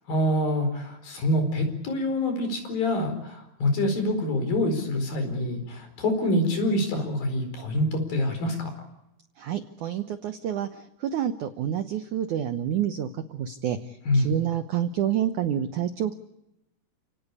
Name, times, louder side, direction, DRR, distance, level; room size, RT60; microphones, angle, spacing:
voice 1, 0.1-8.7 14.1-14.3, left 1 dB, 60° left, 6 dB, 6.3 m, -26 dB
voice 2, 9.4-16.1, right 10 dB, 75° right, 9 dB, 1.8 m, -28 dB
30.0 x 18.5 x 8.5 m, 0.87 s
omnidirectional pair, 4.8 m